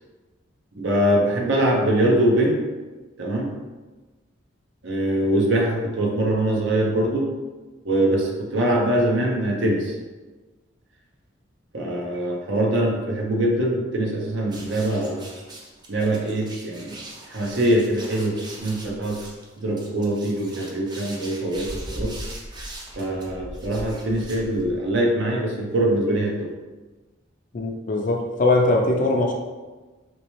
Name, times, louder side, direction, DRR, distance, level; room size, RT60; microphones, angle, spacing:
voice 1, 0.8-2.6 3.2-3.5 4.8-7.3 7.8-9.9 11.7-15.3 15.9-17.0 17.3-19.2 19.6-22.1 23.0-26.5, right 1 dB, 65° right, 0 dB, 0.7 m, -23 dB
sound 1, 14.5-24.9, right 1 dB, 20° right, 0.5 m, -39 dB
voice 2, 27.5-29.3, left 2 dB, 40° left, 2 dB, 0.4 m, -21 dB
3.2 x 3.0 x 3.0 m, 1.3 s
head